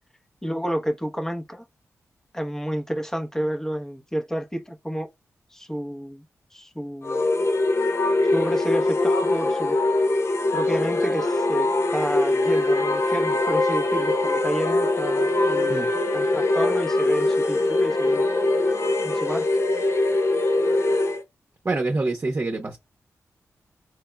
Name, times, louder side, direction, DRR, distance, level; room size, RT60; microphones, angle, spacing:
voice 1, 0.4-1.6 2.3-5.1 5.5-6.2 6.5-7.3 8.3-9.8 10.5-15.9 16.1-18.3 19.0-19.5, equal, 10° left, 0.9 m, -30 dB
sound 1, 7.0-21.2, left 2 dB, 55° left, 0.8 m, -22 dB
voice 2, 21.6-22.8, right 2 dB, 35° right, 0.9 m, -26 dB
3.6 x 3.3 x 2.2 m
cardioid pair, 70°, 6 cm